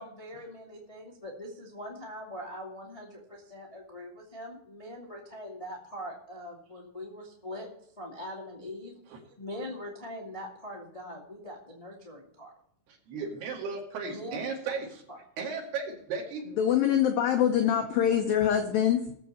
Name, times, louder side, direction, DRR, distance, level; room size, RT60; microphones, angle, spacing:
voice 1, 0.0-7.7 8.0-9.0 9.4-12.5 14.0-14.4, left 1 dB, 25° left, -3 dB, 0.8 m, -42 dB
voice 2, 12.9-15.0 15.4-16.5, right 5 dB, 65° right, 0 dB, 4.0 m, -36 dB
voice 3, 16.6-19.1, left 9 dB, 85° left, 5 dB, 2.0 m, -24 dB
19.5 x 7.5 x 4.3 m, 0.70 s
omnidirectional pair, 5.4 m